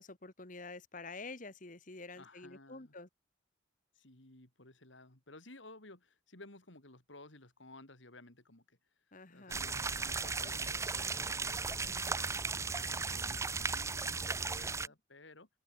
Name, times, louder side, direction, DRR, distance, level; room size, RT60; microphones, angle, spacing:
voice 1, 0.0-3.1 9.1-9.7, left 3 dB, 45° left, 1.9 m, -48 dB
voice 2, 2.2-2.9 4.0-8.8 9.3-12.3 12.9-15.5, left 2 dB, 75° left, 4.0 m, -56 dB
sound 1, 9.5-14.9, right 4 dB, 15° right, 0.5 m, -36 dB
open air
head